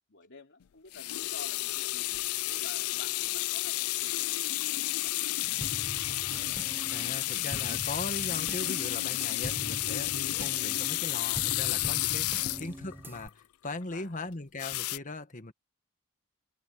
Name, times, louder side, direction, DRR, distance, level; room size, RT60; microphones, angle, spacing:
voice 1, 0.0-2.1 2.5-4.4 4.7-6.2 12.3-12.7 13.9-14.3, left 3 dB, 60° left, 3.3 m, -51 dB
sound 1, 0.9-13.3 14.6-15.0, left 17 dB, 85° left, 0.4 m, -31 dB
sound 2, 5.6-13.3, right 1 dB, 10° right, 1.0 m, -43 dB
voice 2, 6.9-15.5, left 2 dB, 35° left, 1.6 m, -39 dB
head